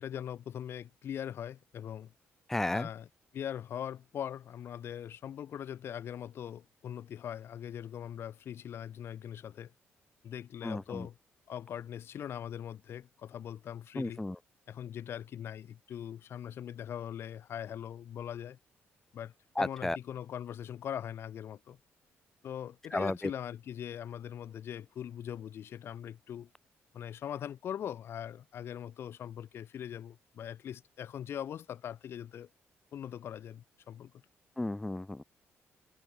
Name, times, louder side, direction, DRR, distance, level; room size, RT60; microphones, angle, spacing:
voice 1, 0.0-2.1 2.7-3.1 3.3-9.7 10.2-11.2 11.5-14.2 14.7-18.6 19.1-21.8 22.4-26.5 26.9-32.5 32.9-34.1, left 9 dB, 60° left, 2.7 m, -41 dB
voice 2, 2.5-2.9 10.6-11.1 14.0-14.4 19.6-20.0 22.9-23.2 34.6-35.2, left 2 dB, 10° left, 0.4 m, -33 dB
cardioid pair, 130°, 5 cm